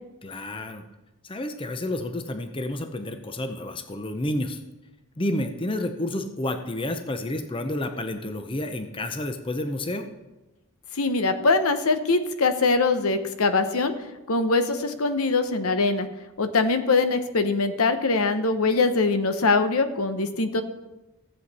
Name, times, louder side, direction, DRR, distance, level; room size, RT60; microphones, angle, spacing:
voice 1, 0.2-0.8 1.2-4.6 5.2-10.1, left 1 dB, 25° left, 7 dB, 0.6 m, -30 dB
voice 2, 10.9-13.9 14.3-16.1 16.4-20.6, left 3 dB, 80° left, 9 dB, 0.9 m, -22 dB
15.5 x 8.1 x 4.2 m, 1.0 s
head